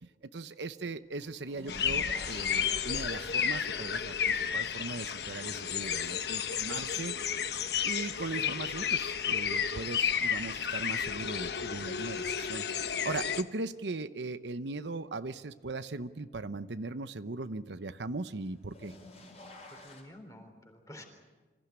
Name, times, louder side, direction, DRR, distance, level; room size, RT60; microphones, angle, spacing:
voice 1, 0.0-7.1 7.8-12.7 12.9-18.9, right 3 dB, 80° right, 12 dB, 0.8 m, -39 dB
sound 1, 1.1-8.2 8.6-9.3 10.9-11.0 12.6-12.7 18.4-20.0, left 2 dB, 35° left, 5.0 m, -52 dB
sound 2, 1.7-13.4, left 7 dB, 65° left, 1.1 m, -32 dB
voice 2, 19.7-21.0, left 1 dB, 20° left, 4 dB, 3.8 m, -50 dB
26.0 x 15.5 x 9.9 m, 1.3 s
head